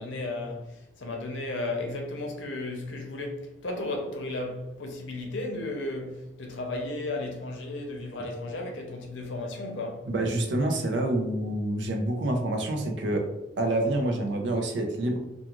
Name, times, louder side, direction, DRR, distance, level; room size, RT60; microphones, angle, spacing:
voice 1, 0.0-10.1, left 2 dB, 85° left, 0.6 m, -34 dB
voice 2, 10.1-13.3 13.6-15.2, right 1 dB, 70° right, 0.5 m, -27 dB
2.4 x 2.3 x 2.9 m
head